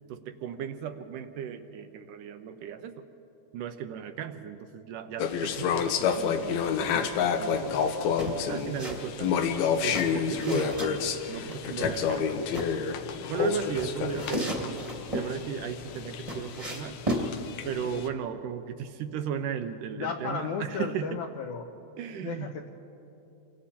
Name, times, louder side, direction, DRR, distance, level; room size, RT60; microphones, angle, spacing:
voice 1, 0.1-3.0 3.5-7.9 8.5-9.4 9.8-12.4 13.3-17.0 17.7-21.2 22.0-22.6, right 8 dB, 75° right, 8 dB, 2.1 m, -36 dB
sound 1, 5.2-18.1, left 7 dB, 85° left, 3.0 m, -29 dB
sound 2, 8.2-9.0 9.3-10.9 11.5-12.7 13.4-15.3 15.8-17.3, right 1 dB, 15° right, 1.3 m, -34 dB
voice 2, 19.9-21.7 22.2-22.7, left 6 dB, 70° left, 3 dB, 2.0 m, -34 dB
28.5 x 24.0 x 4.3 m, 2.9 s
omnidirectional pair, 4.2 m